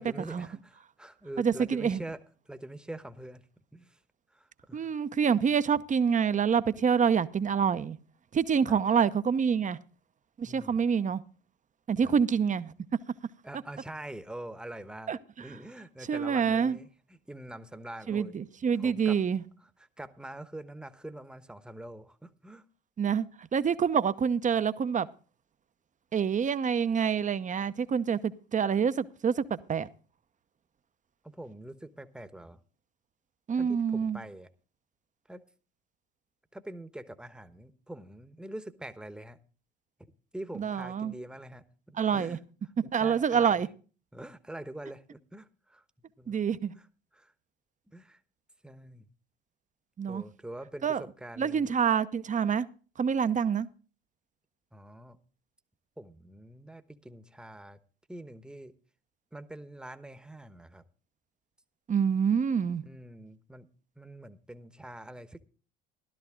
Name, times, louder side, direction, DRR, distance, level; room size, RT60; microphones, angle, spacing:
voice 1, 0.0-3.5 3.7-4.0 4.3-5.0 8.7-8.8 10.4-10.8 12.0-12.1 13.4-15.1 15.4-18.3 18.7-19.2 19.6-22.6 31.2-32.6 33.5-34.5 35.3-35.4 36.5-39.4 40.3-42.4 42.9-43.6 44.1-45.8 46.2-46.4 46.7-46.9 47.1-47.3 47.9-48.2 48.6-49.0 50.1-51.7 54.7-55.2 56.0-57.8 58.1-58.7 59.3-60.8 62.8-63.7 64.0-65.4, right 1 dB, 5° right, 1.1 m, -44 dB
voice 2, 1.4-2.0 4.7-8.0 8.3-9.8 10.4-11.2 11.9-12.7 15.1-15.2 16.1-16.8 18.1-19.4 23.0-23.3 23.5-25.1 26.1-29.4 29.7-29.9 33.5-34.2 40.6-41.1 42.0-42.4 42.9-43.7 46.3-46.7 50.0-50.2 50.8-51.0 51.4-52.7 53.0-53.7 61.9-62.8, right 7 dB, 25° right, 0.8 m, -26 dB
13.5 x 12.5 x 3.7 m
hypercardioid pair, 70°, 29 cm